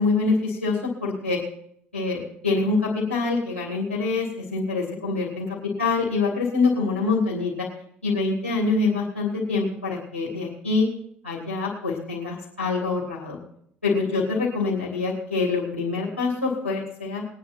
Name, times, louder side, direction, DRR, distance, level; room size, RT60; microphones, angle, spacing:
voice 1, 0.0-1.4 1.9-5.5 5.8-7.7 8.0-10.9 11.2-13.4 13.8-17.2, left 3 dB, 90° left, -6 dB, 3.0 m, -25 dB
21.5 x 9.2 x 4.5 m, 0.69 s
figure-of-eight pair, 55°, 6 cm